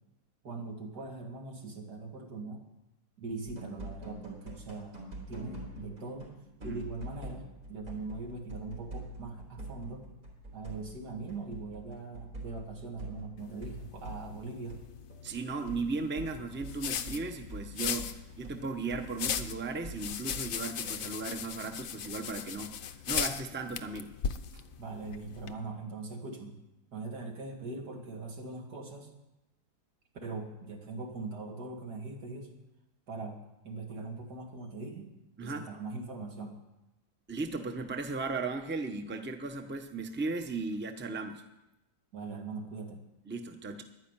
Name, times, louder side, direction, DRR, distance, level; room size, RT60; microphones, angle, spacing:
voice 1, 0.4-2.6 3.2-5.0 5.3-6.3 6.6-10.0 10.5-14.8 24.8-26.6 26.9-29.1 30.2-32.5 33.1-33.4 33.6-35.1 35.4-36.6 42.1-43.0, right 3 dB, 85° right, 1 dB, 2.7 m, -41 dB
sound 1, 3.5-6.4 6.6-14.8 15.1-20.7, right 1 dB, 60° right, 3.8 m, -46 dB
sound 2, 13.4-25.5, left 8 dB, 65° left, 1.1 m, -38 dB
voice 2, 15.2-24.1 24.5-24.6 35.4-35.7 37.3-41.4 43.3-43.8, right 3 dB, 10° right, 6 dB, 0.7 m, -36 dB
11.0 x 10.0 x 8.9 m, 0.95 s
omnidirectional pair, 1.7 m